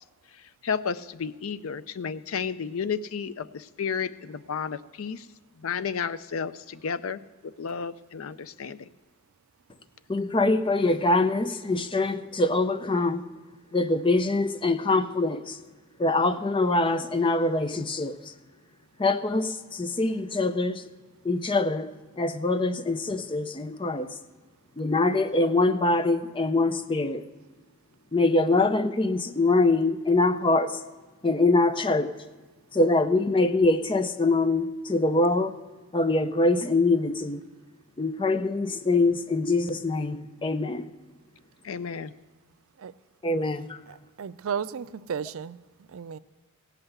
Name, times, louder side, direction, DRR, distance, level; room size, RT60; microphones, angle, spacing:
voice 1, 0.6-5.3 5.6-8.9 41.6-42.1, left 6 dB, 75° left, 0.5 m, -32 dB
voice 2, 10.1-13.2 13.7-15.6 16.0-18.1 19.0-20.8 21.2-24.1 24.8-27.2 28.1-30.8 31.2-32.1 32.7-35.5 35.9-37.4 38.0-40.9 43.2-43.8, left 2 dB, 25° left, 0.5 m, -24 dB
voice 3, 43.9-45.6 45.9-46.2, right 7 dB, 75° right, 0.4 m, -34 dB
17.0 x 5.8 x 7.9 m
head